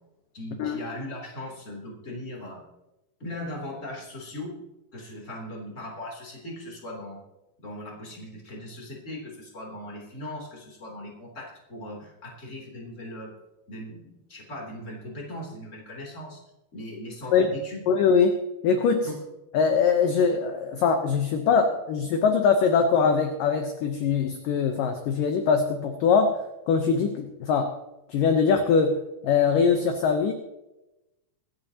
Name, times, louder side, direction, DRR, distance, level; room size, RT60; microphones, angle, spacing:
voice 1, 0.3-2.6 3.2-4.6 4.9-7.2 7.6-13.3 13.7-16.4 16.7-17.8 19.0-19.2, left 1 dB, 20° left, -1 dB, 2.9 m, -39 dB
voice 2, 17.9-18.4 18.6-19.1 19.5-26.3 26.7-27.7 28.1-29.0 29.2-30.3, left 5 dB, 75° left, 5 dB, 2.1 m, -22 dB
23.5 x 11.0 x 2.9 m, 0.97 s
omnidirectional pair, 5.0 m